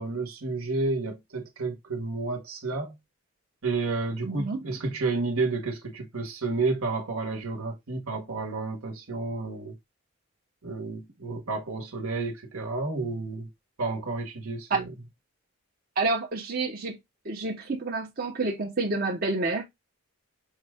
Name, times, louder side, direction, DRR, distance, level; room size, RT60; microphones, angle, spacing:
voice 1, 0.0-3.0 3.6-9.7 10.6-13.5 13.8-14.9, right 3 dB, 75° right, 1.1 m, -31 dB
voice 2, 4.2-4.6 14.7-14.8 16.0-17.0 17.2-19.6, right 3 dB, 40° right, 0.8 m, -28 dB
5.5 x 2.2 x 3.4 m
head